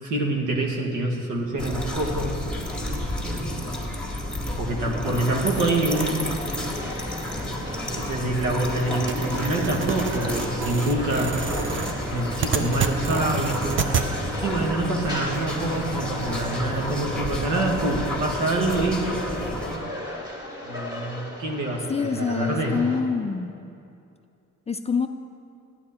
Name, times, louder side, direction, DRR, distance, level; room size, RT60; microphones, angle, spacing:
voice 1, 0.0-2.3 3.3-3.5 4.6-6.2 7.3-11.4 12.1-14.0 14.4-19.1 20.7-22.8, right 2 dB, 80° right, 0 dB, 1.6 m, -26 dB
sound 1, 1.6-19.8, left 1 dB, 5° left, 1.9 m, -31 dB
sound 2, 5.1-23.0, left 1 dB, 15° right, 2.1 m, -37 dB
sound 3, 9.1-14.1, right 7 dB, 40° right, 0.7 m, -29 dB
voice 2, 21.9-23.5 24.7-25.1, left 5 dB, 20° left, 8 dB, 0.4 m, -26 dB
11.5 x 9.6 x 4.3 m, 2.5 s
cardioid pair, 90°, 30 cm